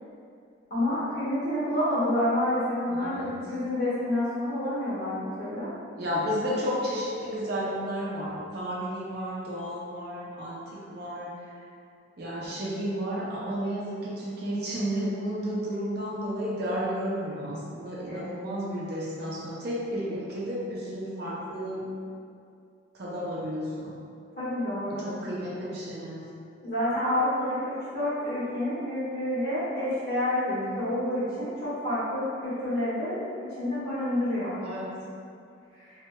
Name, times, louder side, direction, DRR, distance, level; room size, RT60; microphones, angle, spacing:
voice 1, 0.7-5.7 18.1-18.2 24.4-25.3 26.6-34.6 35.7-35.9, left 1 dB, 55° left, -11 dB, 1.3 m, -29 dB
voice 2, 2.9-3.3 6.0-11.3 12.2-21.9 22.9-24.0 24.8-26.2 34.6-34.9, equal, 55° right, -6 dB, 0.5 m, -32 dB
3.1 x 2.7 x 2.2 m, 2.4 s
head